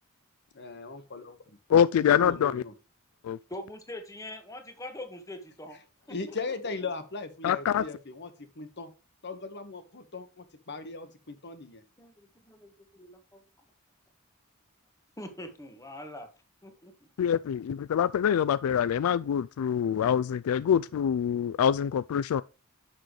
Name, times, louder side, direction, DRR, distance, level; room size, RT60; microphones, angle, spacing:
voice 1, 0.5-1.6 2.1-2.7 6.1-8.9 9.2-11.8, left 3 dB, 55° left, 1.3 m, -38 dB
voice 2, 1.7-2.6 3.2-3.4 7.4-7.8 17.2-22.4, left 8 dB, 85° left, 0.3 m, -25 dB
voice 3, 3.5-5.8 6.1-6.4 12.0-13.4 15.2-16.3 16.6-16.9, left 1 dB, 15° left, 1.6 m, -43 dB
10.5 x 6.4 x 3.1 m
head